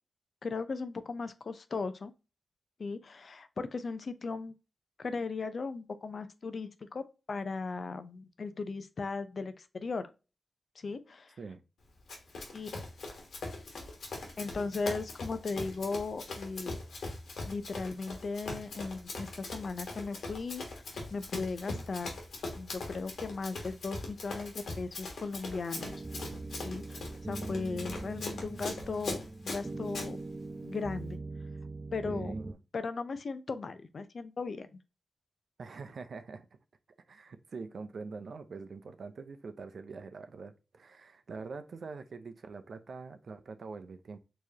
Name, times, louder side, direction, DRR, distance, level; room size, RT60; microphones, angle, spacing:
voice 1, 0.4-2.1 2.8-4.5 5.0-10.1 10.8-11.4 12.5-12.7 14.4-16.8 17.5-20.8 21.1-22.1 22.6-26.0 26.6-30.2 30.6-31.2 31.9-32.3 32.7-34.7, left 4 dB, 60° left, 0.6 m, -37 dB
Run, 12.1-30.1, left 2 dB, 85° left, 1.5 m, -41 dB
sound 1, 25.7-32.5, right 2 dB, 30° right, 0.4 m, -41 dB
voice 2, 28.2-28.8 32.0-32.6 35.6-36.5 37.1-44.2, right 4 dB, 70° right, 0.6 m, -44 dB
4.6 x 3.1 x 2.8 m
cardioid pair, 70°, 0 cm